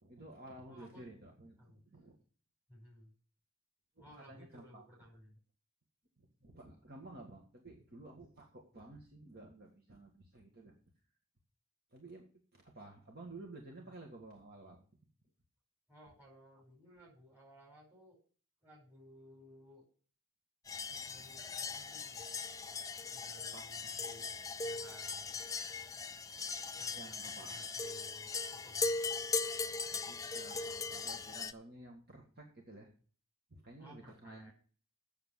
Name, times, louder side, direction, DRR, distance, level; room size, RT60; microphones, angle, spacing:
voice 1, 0.0-2.2 4.0-4.8 6.2-10.7 11.9-12.2 12.5-14.8 23.5-23.7 27.0-27.6 29.9-32.9 33.5-34.5, right 2 dB, 45° right, 1 dB, 1.8 m, -53 dB
voice 2, 0.7-1.0 1.6-1.8 2.7-3.1 4.0-5.4 13.9-14.0 15.9-18.2 18.6-19.8 20.9-22.2 23.1-25.4 26.8-29.0 33.8-34.5, equal, 10° right, -3 dB, 5.2 m, -59 dB
sound 1, 20.7-31.5, left 4 dB, 15° left, 0.4 m, -39 dB
8.1 x 6.9 x 8.0 m, 0.42 s
head